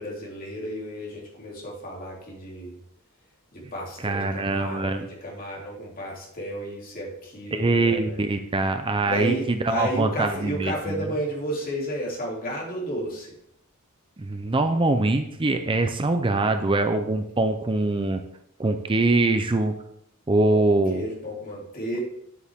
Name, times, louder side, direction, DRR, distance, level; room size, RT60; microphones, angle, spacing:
voice 1, 0.0-2.8 3.5-8.2 9.0-13.3 20.5-22.0, right 1 dB, 40° left, -3 dB, 3.0 m, -32 dB
voice 2, 4.0-5.1 7.5-11.0 14.2-18.2 18.6-19.7 20.3-21.0, right 2 dB, 25° right, 8 dB, 0.5 m, -23 dB
9.7 x 8.3 x 3.6 m, 0.76 s
head